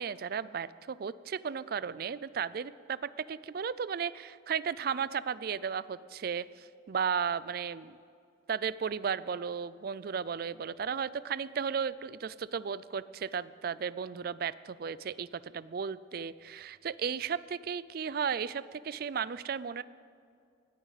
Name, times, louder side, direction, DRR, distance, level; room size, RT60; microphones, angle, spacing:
voice 1, 0.0-8.0 8.5-19.8, right 6 dB, 55° right, 17 dB, 0.4 m, -35 dB
20.0 x 15.5 x 4.1 m, 2.4 s
head